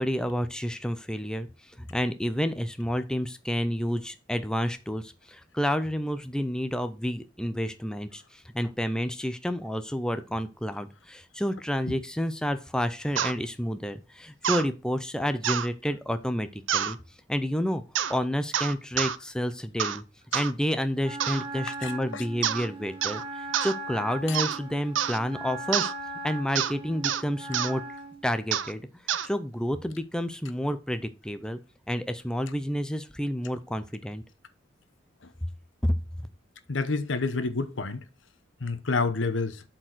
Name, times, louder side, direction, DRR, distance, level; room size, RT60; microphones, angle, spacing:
voice 1, 0.0-17.0 17.3-17.8 18.1-20.0 20.3-25.9 26.2-27.8 28.2-28.8 29.2-31.6 31.9-34.2 35.8-36.0, equal, 5° left, 0.5 m, -30 dB
sound 1, 13.2-13.3 14.4-14.7 15.4-15.7 16.7-16.9 17.9-18.2 18.5-19.2 19.8-20.0 20.3-20.5 21.2-21.5 22.4-22.7 23.0-23.2 23.5-23.7 24.3-24.6 25.0-25.2 25.7-25.9 26.6-26.7 27.0-27.2 27.5-27.7 28.5-28.7 29.1-29.3, right 9 dB, 80° right, 0.6 m, -27 dB
Wind instrument woodwind instrument, 21.0-28.2, right 2 dB, 30° right, 1.5 m, -39 dB
voice 2, 21.8-22.2 24.3-24.4 36.7-38.0 38.6-39.6, left 3 dB, 80° left, 1.0 m, -29 dB
7.6 x 4.6 x 6.1 m
head